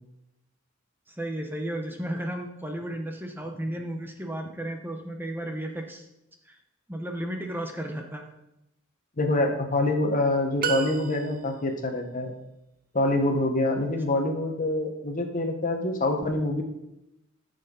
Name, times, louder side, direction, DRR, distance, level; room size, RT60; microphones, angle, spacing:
voice 1, 1.1-6.1 6.5-6.6 6.9-8.3, right 1 dB, 10° right, 3 dB, 0.9 m, -34 dB
voice 2, 9.2-12.3 12.9-16.6, left 2 dB, 40° left, 4 dB, 1.2 m, -25 dB
sound 1, 10.6-11.7, right 6 dB, 45° right, 0.6 m, -32 dB
13.5 x 6.7 x 3.9 m, 0.89 s
head